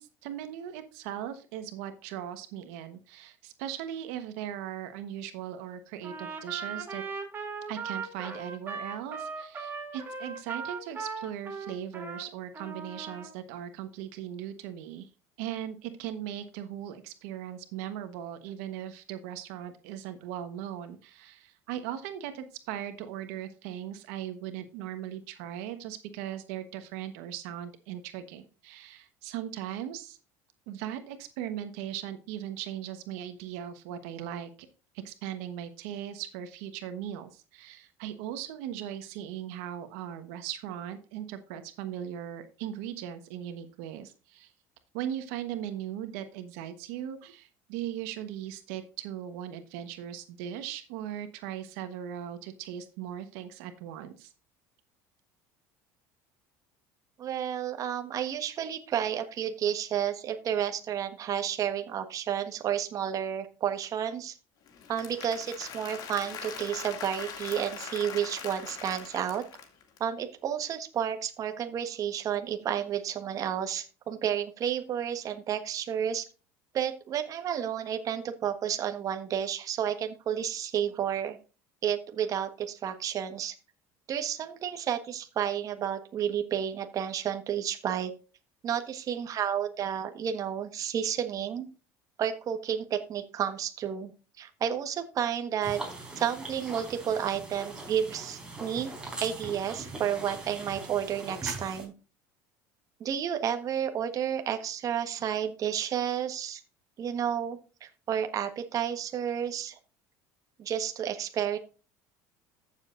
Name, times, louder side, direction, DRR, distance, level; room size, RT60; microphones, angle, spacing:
voice 1, 0.0-7.0 7.7-15.1 15.4-30.2 30.7-34.7 35.0-44.5 44.9-54.3, right 10 dB, 80° right, 9 dB, 1.2 m, -38 dB
Trumpet, 6.0-12.3 12.5-13.3, right 5 dB, 25° right, 2.8 m, -38 dB
voice 2, 57.2-64.4 64.9-69.5 70.0-76.3 76.7-81.4 81.8-83.5 84.1-88.1 88.6-91.7 92.2-94.1 94.4-95.8 96.2-98.9 99.2-101.9 103.0-106.6 107.0-109.8 110.6-111.6, right 9 dB, 45° right, 7 dB, 1.3 m, -31 dB
Applause / Crowd, 64.7-70.0, left 7 dB, 55° left, 2.4 m, -42 dB
sound 1, 95.6-101.8, right 2 dB, 10° right, 4.6 m, -41 dB
14.0 x 7.3 x 2.6 m, 0.34 s
supercardioid pair, 105°, 8 cm